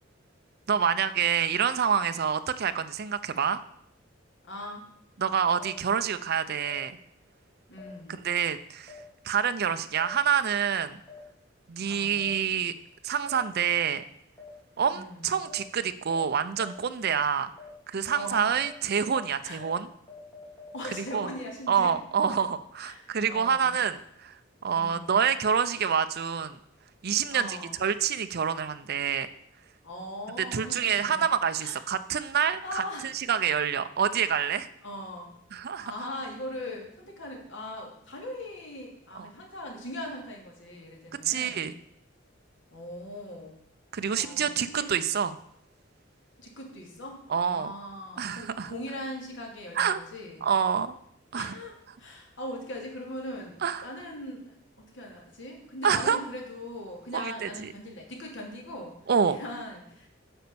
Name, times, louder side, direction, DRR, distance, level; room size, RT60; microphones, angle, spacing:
voice 1, 0.7-3.6 5.2-7.0 8.1-8.9 9.2-11.0 11.7-12.7 13.0-14.0 14.8-17.5 17.9-19.9 20.9-21.3 21.7-24.3 24.6-26.6 27.0-29.3 30.5-34.7 35.5-35.9 39.2-39.3 41.2-41.7 43.9-45.4 47.3-47.7 48.2-48.7 49.7-50.0 50.4-50.9 51.3-51.5 53.6-53.9 55.8-56.2 57.1-57.7 59.1-59.4, right 7 dB, 55° right, 10 dB, 0.5 m, -27 dB
voice 2, 4.4-4.8 7.7-8.3 11.9-12.3 14.9-15.4 18.1-18.6 19.4-19.6 20.7-22.4 22.8-23.8 24.7-25.2 27.3-27.9 29.8-31.2 31.6-31.8 32.6-33.1 34.8-35.3 35.8-41.7 42.7-43.6 44.1-44.9 46.4-50.5 51.3-58.9 59.3-60.1, left 1 dB, 70° left, 0 dB, 2.5 m, -40 dB
sound 1, 5.6-5.7 6.7-6.8 7.8-7.9 8.9-9.0 10.0-10.1 11.1-11.2 12.2-12.3 13.3-13.4 14.4-14.5 15.5-15.6 16.1-16.2 16.6-16.7 17.1-17.2 17.6-17.7 18.1-18.2 18.6-18.7 19.1-19.2 19.6-19.7 20.1-21.2, left 6 dB, 10° left, 2.6 m, -46 dB
8.9 x 5.3 x 6.9 m, 0.70 s
head